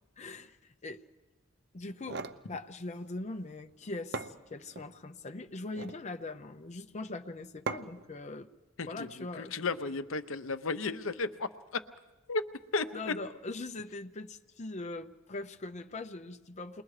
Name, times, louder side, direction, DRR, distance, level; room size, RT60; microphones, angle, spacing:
voice 1, 0.2-1.0 1.7-8.5 8.9-9.5 12.9-16.8, left 2 dB, 35° left, 7 dB, 0.7 m, -41 dB
sound 1, 1.8-2.4 3.7-3.8 4.1-4.9 5.6-6.0 7.7-8.1, right 4 dB, 55° right, 0.7 m, -39 dB
voice 2, 8.8-11.8 12.3-12.4 12.7-12.9, left 3 dB, 75° left, 11 dB, 0.8 m, -34 dB
29.0 x 21.5 x 4.9 m, 1.1 s
head